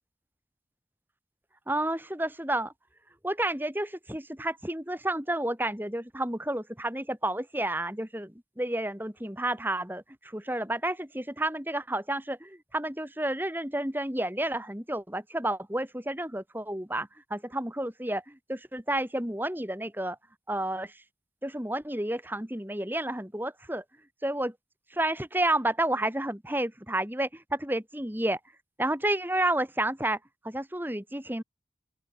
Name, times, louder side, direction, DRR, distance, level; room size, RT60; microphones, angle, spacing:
voice 1, 1.7-2.7 3.2-20.2 20.5-20.9 21.4-23.8 24.2-24.5 24.9-28.4 28.8-30.2 30.4-31.4, right 1 dB, 10° right, 3.2 m, -31 dB
open air
head